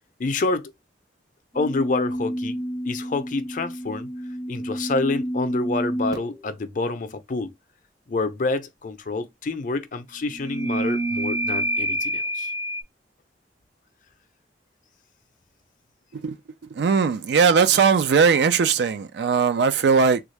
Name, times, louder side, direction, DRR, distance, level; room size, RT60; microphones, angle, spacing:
voice 1, 0.2-0.7 1.5-4.1 4.5-7.5 8.1-12.5, left 3 dB, 50° left, 0.5 m, -28 dB
sound 1, 1.5-6.4 10.2-12.8, right 1 dB, 20° right, 0.6 m, -28 dB
voice 2, 16.7-20.2, right 5 dB, 70° right, 0.4 m, -19 dB
3.5 x 2.4 x 3.1 m
head